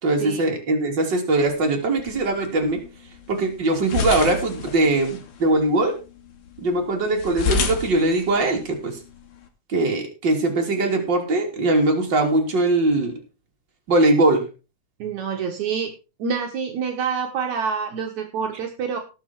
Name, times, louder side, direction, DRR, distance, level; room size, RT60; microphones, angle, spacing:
voice 1, 0.0-2.8 3.3-6.0 6.6-9.0 9.7-13.2 13.9-14.4, right 2 dB, 35° right, 1 dB, 3.5 m, -21 dB
sound 1, 1.4-9.5, left 6 dB, 75° left, 3.3 m, -32 dB
voice 2, 15.0-15.9 16.2-19.0, right 6 dB, 70° right, 3 dB, 2.7 m, -27 dB
18.0 x 6.8 x 4.5 m, 0.31 s
omnidirectional pair, 3.5 m